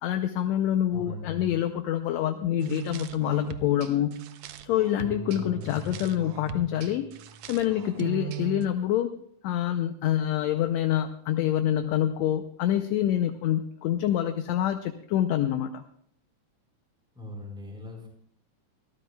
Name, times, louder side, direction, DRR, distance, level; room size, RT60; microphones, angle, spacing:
voice 1, 0.0-4.2 4.6-7.1 7.5-9.1 9.4-15.8, left 11 dB, 75° left, 8 dB, 1.7 m, -26 dB
voice 2, 0.9-1.6 5.3-5.9 17.1-18.1, left 2 dB, ahead, -1 dB, 3.9 m, -40 dB
sound 1, 2.6-8.7, right 10 dB, 85° right, 1.3 m, -39 dB
25.0 x 14.0 x 2.3 m, 0.67 s
omnidirectional pair, 3.6 m